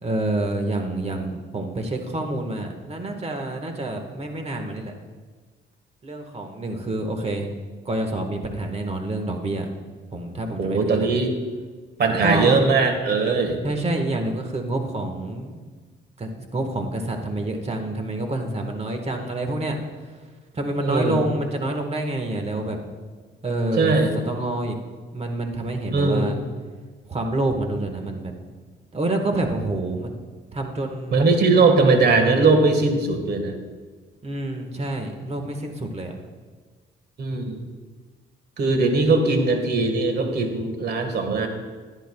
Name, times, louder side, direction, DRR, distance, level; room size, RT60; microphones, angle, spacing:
voice 1, 0.0-4.9 6.0-7.5 7.8-9.7 10.1-11.1 12.0-12.6 13.6-15.6 16.2-19.8 20.5-22.8 23.4-23.9 24.3-24.8 25.1-26.3 27.1-28.3 28.9-30.1 30.5-31.2 34.2-36.1, right 2 dB, 30° right, 4 dB, 1.5 m, -27 dB
voice 2, 10.6-11.4 12.0-13.6 20.8-21.2 23.8-24.1 25.9-26.3 31.1-33.5 37.2-37.6 38.6-41.5, right 3 dB, 55° right, 5 dB, 1.6 m, -20 dB
15.0 x 10.5 x 2.3 m, 1.4 s
cardioid pair, 90°, 20 cm